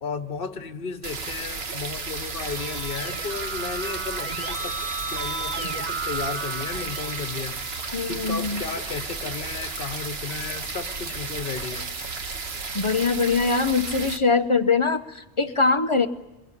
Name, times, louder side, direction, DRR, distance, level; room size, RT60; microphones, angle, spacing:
voice 1, 0.0-4.8 5.1-11.9, left 5 dB, 60° left, 9 dB, 1.3 m, -34 dB
sound 1, 1.0-14.2, right 4 dB, 70° right, 1.7 m, -33 dB
Keyboard (musical), 1.7-8.3, right 4 dB, 40° right, 1.4 m, -35 dB
voice 2, 7.9-8.6 12.7-16.1, left 4 dB, 30° left, 9 dB, 1.0 m, -22 dB
22.5 x 22.5 x 9.9 m, 1.0 s
omnidirectional pair, 1.1 m